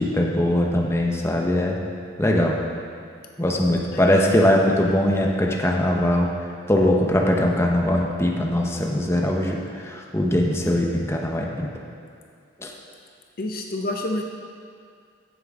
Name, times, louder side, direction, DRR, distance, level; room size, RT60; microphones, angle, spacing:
voice 1, 0.0-1.8 2.2-2.6 3.4-6.3 6.7-11.7 12.6-12.7, left 1 dB, 15° left, -1 dB, 0.9 m, -21 dB
voice 2, 13.4-14.2, left 1 dB, 50° left, 2 dB, 0.6 m, -28 dB
15.0 x 7.7 x 3.7 m, 2.3 s
head